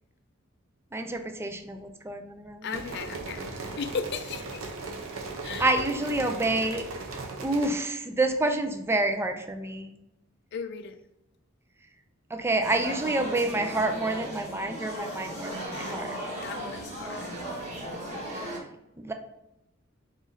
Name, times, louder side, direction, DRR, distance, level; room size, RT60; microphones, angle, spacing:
voice 1, 0.9-2.8 5.6-6.8 7.4-9.9 12.3-16.2 18.4-18.6 19.0-19.1, right 2 dB, 10° right, 0.4 m, -28 dB
voice 2, 2.6-3.5 3.8-4.7 5.4-5.7 10.5-11.0 15.0-16.0 16.4-17.5, left 5 dB, 55° left, 0.4 m, -37 dB
sound 1, 2.7-7.7, right 3 dB, 85° right, 0.7 m, -37 dB
sound 2, 12.6-18.6, right 1 dB, 40° right, 1.3 m, -36 dB
4.0 x 3.1 x 3.7 m
head